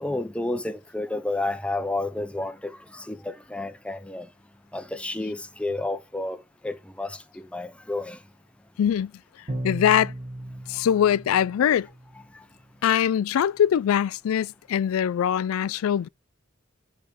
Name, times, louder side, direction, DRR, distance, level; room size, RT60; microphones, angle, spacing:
voice 1, 0.0-4.3 4.7-8.2, left 2 dB, 5° left, 0.7 m, -31 dB
voice 2, 8.8-9.1 9.6-10.1 10.7-11.9 12.8-16.1, left 9 dB, 85° left, 0.3 m, -22 dB
Bowed string instrument, 9.5-12.3, right 1 dB, 25° right, 1.8 m, -36 dB
10.0 x 3.6 x 4.6 m
head